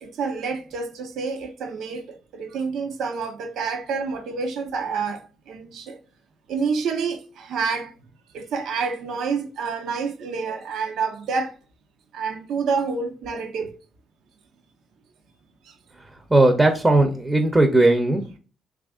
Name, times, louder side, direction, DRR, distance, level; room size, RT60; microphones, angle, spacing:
voice 1, 0.0-5.2 5.5-6.0 6.5-7.9 8.3-11.5 12.1-13.7, right 5 dB, 75° right, 0.6 m, -28 dB
voice 2, 16.3-18.4, right 2 dB, 15° right, 0.6 m, -18 dB
3.2 x 2.4 x 3.5 m
cardioid pair, 90°, 0 cm